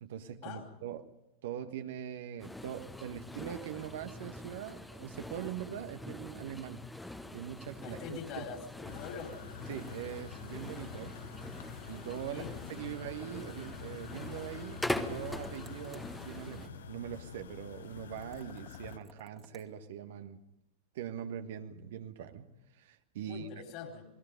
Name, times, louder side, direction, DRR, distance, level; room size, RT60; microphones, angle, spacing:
voice 1, 0.0-1.1 1.4-6.8 7.3-8.5 9.7-11.2 11.9-20.4 20.9-22.5 22.7-23.5, right 9 dB, 55° right, 1.4 m, -42 dB
sound 1, 2.4-16.7, left 1 dB, 5° left, 1.4 m, -43 dB
voice 2, 7.8-9.3 12.2-12.7 23.2-24.1, left 6 dB, 45° left, 4.1 m, -44 dB
sound 2, 8.9-19.0, left 8 dB, 65° left, 1.0 m, -47 dB
sound 3, 9.2-10.2 12.1-12.5 12.8-12.9 13.2-13.3 15.3-16.1 18.2-19.7, right 4 dB, 15° right, 2.2 m, -58 dB
28.5 x 20.5 x 5.2 m
figure-of-eight pair, 90°, 0 cm